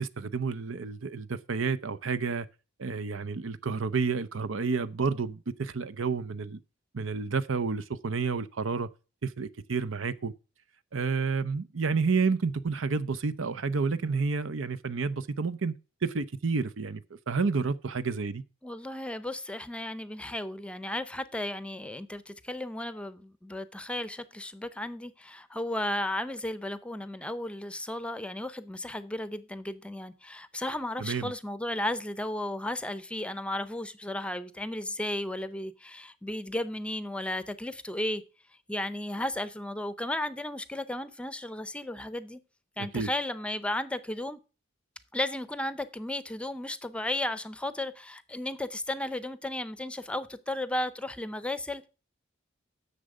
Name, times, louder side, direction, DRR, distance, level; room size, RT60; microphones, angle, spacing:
voice 1, 0.0-2.5 2.8-6.6 6.9-8.9 9.2-10.3 10.9-15.7 16.0-18.4 31.0-31.3 42.8-43.1, right 4 dB, 80° right, 0.7 m, -30 dB
voice 2, 18.6-38.2 38.7-42.4 42.8-44.4 45.1-51.9, left 1 dB, 5° left, 0.6 m, -34 dB
10.0 x 6.8 x 5.0 m
head